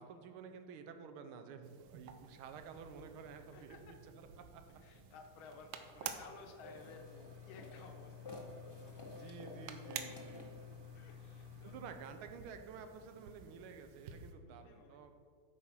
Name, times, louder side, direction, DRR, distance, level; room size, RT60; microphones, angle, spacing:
voice 1, 0.0-3.8 4.2-4.3 4.5-4.6 9.1-10.5 11.6-15.1, right 6 dB, 90° right, 7 dB, 1.6 m, -51 dB
sound 1, 1.6-14.3, right 7 dB, 70° right, 1.2 m, -52 dB
voice 2, 3.5-4.0 4.8-9.3 10.3-10.4 10.9-11.8 14.4-15.2, left 4 dB, 75° left, 4 dB, 1.7 m, -57 dB
sound 2, 6.6-11.8, left 4 dB, 40° left, 0.3 m, -51 dB
8.5 x 4.8 x 5.6 m, 2.2 s
omnidirectional pair, 2.3 m